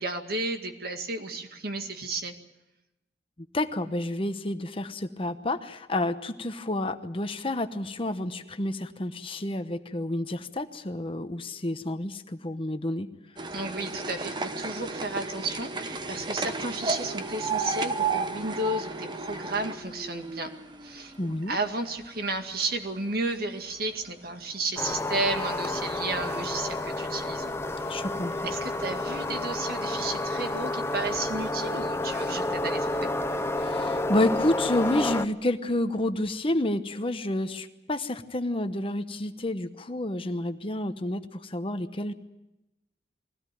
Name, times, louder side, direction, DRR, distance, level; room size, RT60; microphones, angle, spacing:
voice 1, 0.0-2.3 13.5-20.5 20.8-21.1 21.5-27.6 27.9-28.0 28.4-33.1, right 2 dB, 60° right, 5 dB, 2.1 m, -33 dB
voice 2, 3.5-13.1 21.2-21.6 27.9-28.5 33.6-42.1, left 1 dB, 30° left, 9 dB, 1.0 m, -29 dB
sound 1, 13.4-21.6 22.0-22.9 23.6-23.7 23.9-24.0 24.3-24.4 25.3-25.4 26.0-26.1 26.8-26.9 27.3-27.4, right 4 dB, 25° right, 1.0 m, -33 dB
sound 2, 24.8-35.3, left 2 dB, 15° left, 0.8 m, -30 dB
22.5 x 17.0 x 9.3 m, 0.95 s
head